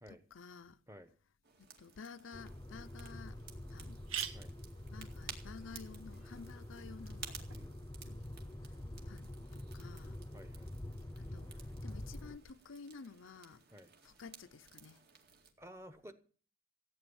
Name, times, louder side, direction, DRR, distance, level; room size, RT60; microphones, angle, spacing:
voice 1, 0.1-0.8 1.8-3.4 3.7-4.0 4.9-7.2 8.0-8.3 9.1-10.2 11.2-11.5 11.8-13.6 14.0-15.0, left 5 dB, 70° left, 0.6 m, -52 dB
sound 1, 1.4-15.5, right 7 dB, 50° right, 2.2 m, -55 dB
sound 2, 2.3-12.4, left 1 dB, 20° left, 0.8 m, -47 dB
sound 3, 2.5-2.6 3.1-3.2 3.4-3.5 3.8-7.6, right 9 dB, 80° right, 1.5 m, -47 dB
voice 2, 10.3-10.7 13.7-13.9 15.6-16.1, equal, 15° right, 1.1 m, -53 dB
15.0 x 9.1 x 7.1 m
head